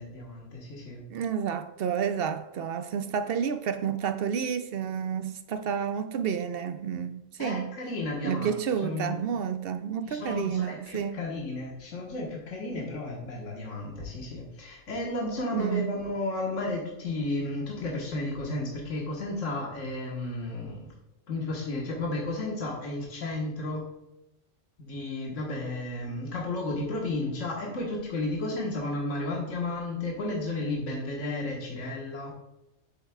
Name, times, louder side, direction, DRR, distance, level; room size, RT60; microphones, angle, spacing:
voice 1, 0.0-1.0 7.4-8.5 8.8-9.2 10.1-20.9 21.3-23.8 24.9-32.3, left 2 dB, 70° left, 1.7 m, -33 dB
voice 2, 1.1-7.7 8.2-11.2 15.5-16.0, right 7 dB, 65° right, 0.6 m, -30 dB
8.0 x 8.0 x 2.3 m
omnidirectional pair, 1.3 m